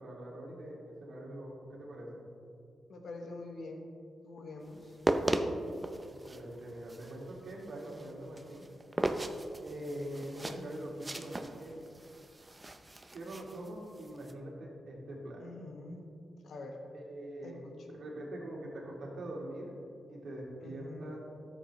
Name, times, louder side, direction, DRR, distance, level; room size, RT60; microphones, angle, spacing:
voice 1, 0.0-2.2 6.1-8.7 9.6-11.8 13.1-15.5 16.9-17.6 17.9-19.7 20.1-21.2, right 1 dB, 65° right, -3 dB, 2.3 m, -43 dB
voice 2, 2.9-3.9 4.2-5.0 15.4-16.0 16.4-16.8 17.4-17.8 20.6-21.1, left 2 dB, 70° left, 3 dB, 1.2 m, -45 dB
sound 1, 4.8-14.3, right 1 dB, 15° right, 0.6 m, -37 dB
12.5 x 7.9 x 3.1 m, 2.4 s
cardioid pair, 95°, 0 cm